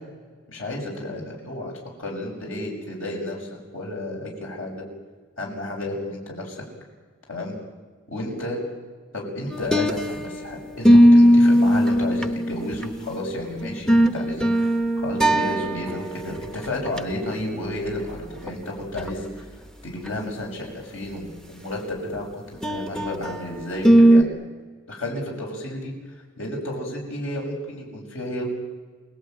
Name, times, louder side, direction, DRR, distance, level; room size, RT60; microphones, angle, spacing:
voice 1, 0.5-1.7 2.0-4.8 5.4-6.6 7.3-7.6 8.1-8.6 9.1-19.4 19.8-22.4 22.7-24.3 24.9-25.9 26.4-28.5, left 1 dB, 75° left, 0 dB, 6.8 m, -32 dB
sound 1, 9.5-10.4 10.8-13.0 13.6-16.1 16.4-16.5 16.9-17.0 18.5-18.6 19.0-19.1 22.6-23.3 23.8-24.2, equal, 5° left, 0.7 m, -17 dB
29.0 x 18.0 x 9.2 m, 1.5 s
head